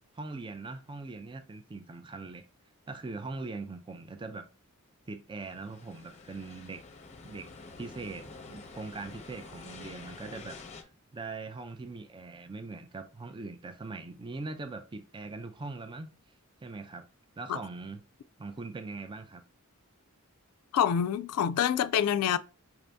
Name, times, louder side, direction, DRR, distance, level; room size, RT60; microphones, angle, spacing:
voice 1, 0.1-2.5 2.9-4.5 5.1-6.8 7.2-7.5 7.8-10.6 11.1-16.1 16.6-17.1 17.4-18.0 18.4-19.4, right 3 dB, 20° right, 0.4 m, -41 dB
sound 1, 5.4-10.8, left 3 dB, 30° left, 0.7 m, -48 dB
voice 2, 20.7-22.4, left 9 dB, 80° left, 0.3 m, -26 dB
5.8 x 2.6 x 3.4 m
head